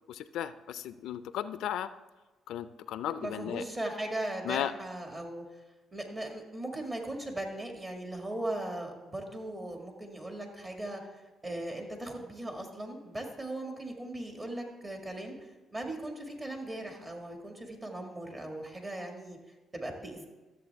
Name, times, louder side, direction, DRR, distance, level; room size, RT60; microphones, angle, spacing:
voice 1, 0.1-1.9 2.5-3.6 4.4-4.7, left 11 dB, 85° left, 13 dB, 0.4 m, -35 dB
voice 2, 3.2-5.4 5.9-11.0 11.4-15.4 15.7-19.4 19.7-20.3, right 1 dB, 25° right, 2 dB, 1.9 m, -38 dB
13.0 x 7.4 x 3.5 m, 1.2 s
cardioid pair, 90°, 0 cm